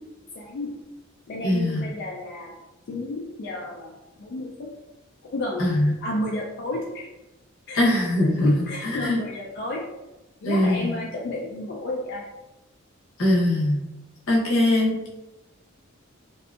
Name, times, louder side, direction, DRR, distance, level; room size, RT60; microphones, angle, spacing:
voice 1, 0.3-0.7 1.3-2.5 2.9-4.7 5.2-7.1 7.7-7.8 8.4-9.8 10.4-12.2, left 2 dB, 55° left, -2 dB, 0.3 m, -32 dB
voice 2, 1.4-1.8 5.6-5.9 7.7-8.5 9.0-9.2 10.4-10.8 13.2-13.8 14.3-15.0, left 1 dB, 85° left, -5 dB, 0.8 m, -21 dB
2.7 x 2.5 x 2.3 m, 1.0 s
head